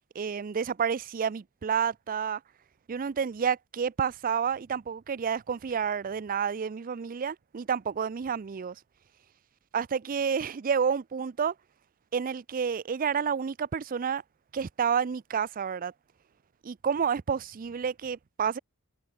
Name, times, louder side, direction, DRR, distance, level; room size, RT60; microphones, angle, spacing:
voice 1, 0.2-2.4 2.9-8.7 9.7-11.5 12.1-14.2 14.5-15.9 16.6-18.6, right 7 dB, 40° right, 0.4 m, -29 dB
head